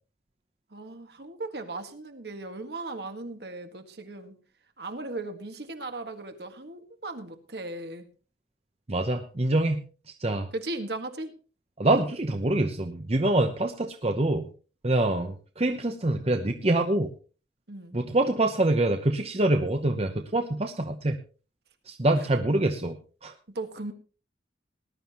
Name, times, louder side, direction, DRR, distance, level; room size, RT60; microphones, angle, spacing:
voice 1, 0.7-4.3 4.8-8.1 10.5-11.3 17.7-18.0 23.6-23.9, right 2 dB, 65° right, 6 dB, 1.7 m, -37 dB
voice 2, 8.9-9.8 10.2-10.5 11.8-14.4 14.8-17.1 17.9-21.2 21.9-23.0 23.2-23.3, right 2 dB, 35° right, 6 dB, 0.9 m, -25 dB
19.5 x 11.5 x 2.9 m, 0.36 s
head